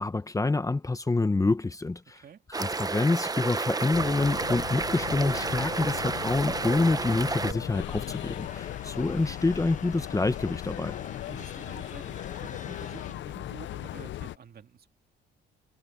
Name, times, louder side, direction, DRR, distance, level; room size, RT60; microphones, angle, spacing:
voice 1, 0.0-2.2 2.6-11.0, left 3 dB, 15° left, 1.0 m, -27 dB
sound 1, 2.5-7.5, right 3 dB, 20° right, 0.8 m, -31 dB
sound 2, 3.9-14.4, left 13 dB, 70° left, 0.6 m, -38 dB
sound 3, 7.7-13.1, left 6 dB, 40° left, 1.6 m, -45 dB
voice 2, 11.3-14.9, right 8 dB, 50° right, 2.4 m, -49 dB
cardioid pair, 90°, 20 cm